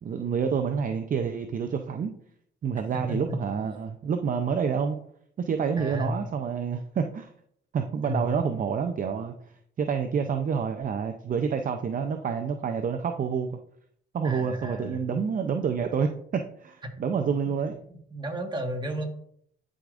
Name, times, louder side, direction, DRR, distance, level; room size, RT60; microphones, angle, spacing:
voice 1, 0.0-2.1 2.6-5.0 5.4-7.3 7.7-9.3 9.8-13.6 14.1-17.8, right 6 dB, 45° right, 6 dB, 0.6 m, -28 dB
voice 2, 2.9-3.4 5.8-6.2 8.0-8.3 14.2-15.0 17.9-19.1, equal, 20° right, 2 dB, 1.6 m, -32 dB
11.5 x 4.9 x 2.5 m, 0.67 s
cardioid pair, 90°, 20 cm